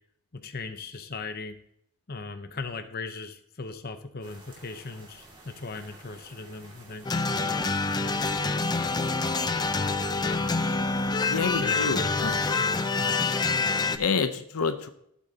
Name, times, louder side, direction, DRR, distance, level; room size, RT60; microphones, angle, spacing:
voice 1, 0.3-1.6 2.1-7.1 11.6-13.2, left 3 dB, 45° left, 7 dB, 0.8 m, -38 dB
sound 1, 4.2-13.1, right 2 dB, 25° right, 2.2 m, -51 dB
sound 2, 7.0-14.0, left 3 dB, 20° left, 0.4 m, -26 dB
voice 2, 11.3-12.4 14.0-14.9, left 5 dB, 80° left, 9 dB, 0.8 m, -28 dB
14.5 x 8.3 x 2.8 m, 0.72 s
head